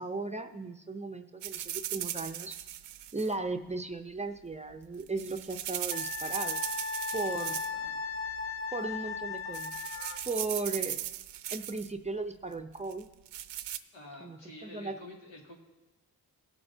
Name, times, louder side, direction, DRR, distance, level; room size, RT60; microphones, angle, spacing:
voice 1, 0.0-2.6 3.1-6.6 7.1-7.6 8.7-9.8 10.2-11.0 11.5-13.1 14.2-15.0, right 3 dB, 15° right, 7 dB, 0.5 m, -36 dB
sound 1, 1.4-3.3 4.8-7.9 8.1-8.6 9.1-9.3 9.5-11.9 12.9-13.8, right 12 dB, 75° right, 0.6 m, -38 dB
Wind instrument woodwind instrument, 5.9-10.2, left 5 dB, 30° left, 0.6 m, -36 dB
voice 2, 7.7-8.1 13.9-15.6, left 1 dB, 90° left, -2 dB, 2.3 m, -49 dB
18.0 x 7.7 x 2.7 m, 1.1 s
cardioid pair, 90°, 42 cm